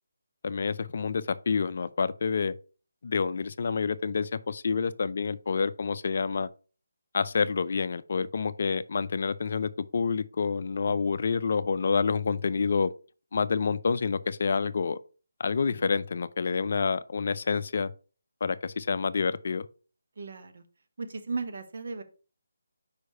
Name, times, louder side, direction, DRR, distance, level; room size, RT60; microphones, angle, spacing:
voice 1, 0.4-2.6 3.0-6.5 7.1-12.9 13.3-15.0 15.4-17.9 18.4-19.7, left 5 dB, 55° left, 0.4 m, -28 dB
voice 2, 20.2-20.6 21.0-22.0, right 4 dB, 55° right, 1.1 m, -35 dB
5.0 x 4.7 x 5.4 m
figure-of-eight pair, 150°, 0 cm